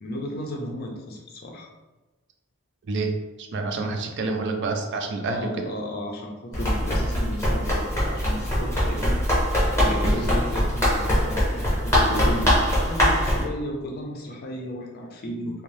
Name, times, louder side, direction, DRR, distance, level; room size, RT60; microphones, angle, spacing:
voice 1, 0.0-1.7 5.2-9.2 9.8-15.6, left 1 dB, 45° left, 0 dB, 0.5 m, -34 dB
voice 2, 3.4-5.6 10.0-10.2, right 3 dB, 55° right, 4 dB, 0.4 m, -28 dB
Run, 6.5-13.4, equal, 15° left, 0.8 m, -22 dB
2.6 x 2.0 x 3.1 m, 1.1 s
head